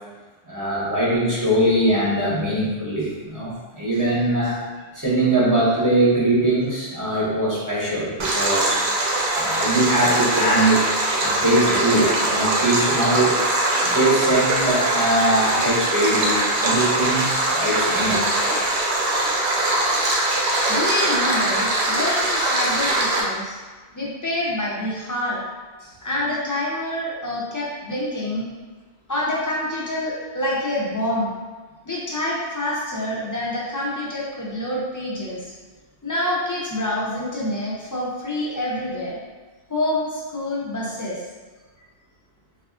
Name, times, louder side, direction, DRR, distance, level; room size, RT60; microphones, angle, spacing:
voice 1, 0.5-4.6 4.9-8.8 9.4-10.8 11.1-13.4 13.8-18.3 25.8-25.9, right 1 dB, 25° right, -8 dB, 0.6 m, -21 dB
Stream, 8.2-23.2, right 1 dB, 85° right, 0.9 m, -22 dB
voice 2, 20.7-23.6 23.9-25.4 26.0-28.5 29.1-31.3 31.9-35.5 36.0-39.2 39.7-41.2, left 1 dB, 35° left, -5 dB, 0.3 m, -27 dB
3.3 x 2.4 x 2.4 m, 1.4 s
omnidirectional pair, 1.0 m